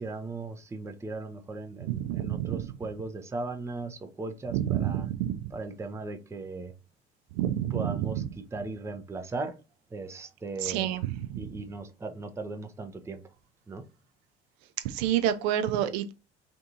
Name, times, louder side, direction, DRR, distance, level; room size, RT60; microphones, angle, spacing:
voice 1, 0.0-5.1 5.5-6.7 7.7-9.6 9.9-10.9 11.3-13.2 13.7-13.8, right 3 dB, 10° right, 0.5 m, -37 dB
voice 2, 1.8-2.6 4.5-5.5 7.3-8.2 10.6-11.5 14.8-16.1, right 11 dB, 65° right, 0.6 m, -29 dB
3.4 x 2.7 x 2.6 m
figure-of-eight pair, 60°, 34 cm